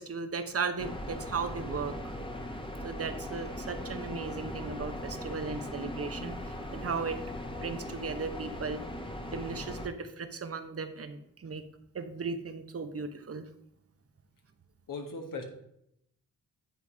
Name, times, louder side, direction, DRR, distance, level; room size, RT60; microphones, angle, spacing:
voice 1, 0.0-2.2 2.8-8.8 9.2-11.6 11.9-13.4, right 4 dB, 40° right, 9 dB, 1.0 m, -36 dB
sound 1, 0.8-9.9, left 1 dB, 15° left, 1.2 m, -39 dB
voice 2, 14.9-15.5, left 3 dB, 60° left, 3 dB, 1.6 m, -38 dB
9.3 x 4.0 x 4.8 m, 0.77 s
supercardioid pair, 55°, 37 cm